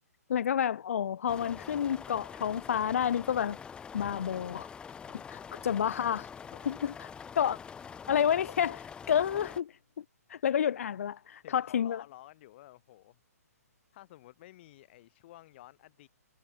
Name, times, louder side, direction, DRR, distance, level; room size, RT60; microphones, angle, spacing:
voice 1, 0.3-3.6 3.9-4.7 5.6-6.3 6.7-7.1 7.3-7.6 8.1-10.0 10.3-12.0, left 9 dB, 60° left, 1.0 m, -29 dB
sound 1, 1.3-9.6, left 6 dB, 10° left, 1.1 m, -45 dB
voice 2, 5.0-5.8 6.4-6.8 11.4-13.2 13.5-13.6 13.9-16.1, left 15 dB, 40° left, 5.5 m, -53 dB
figure-of-eight pair, 130°, 9 cm